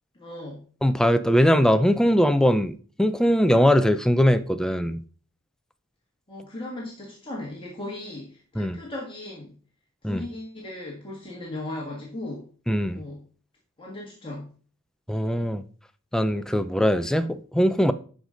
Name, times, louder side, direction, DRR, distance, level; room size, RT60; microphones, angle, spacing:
voice 1, 0.1-0.6 6.3-9.6 10.0-12.5 12.9-13.2 13.8-14.5, left 1 dB, 25° left, 1.7 m, -37 dB
voice 2, 0.8-5.0 8.6-8.8 10.0-10.2 12.7-13.0 15.1-15.6 16.1-17.9, equal, 5° left, 0.4 m, -21 dB
11.5 x 5.0 x 3.9 m
head